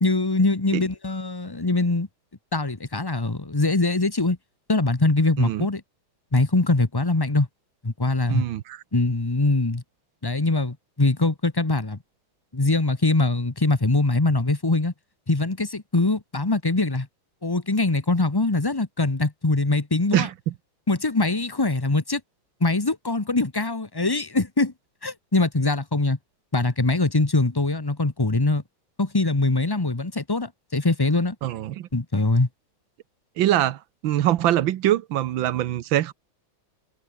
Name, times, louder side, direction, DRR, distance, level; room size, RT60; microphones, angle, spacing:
voice 1, 0.0-2.1 2.5-4.4 4.7-5.8 6.3-7.5 7.8-8.4 8.9-9.8 10.2-12.0 12.5-14.9 15.3-17.1 17.4-20.3 20.9-22.2 22.6-24.7 25.0-26.2 26.5-28.6 29.0-31.3 31.9-32.5, left 2 dB, 15° left, 1.2 m, -22 dB
voice 2, 8.3-8.8 20.1-20.5 31.4-31.9 33.4-36.1, right 13 dB, 70° right, 1.6 m, -23 dB
omnidirectional pair, 2.3 m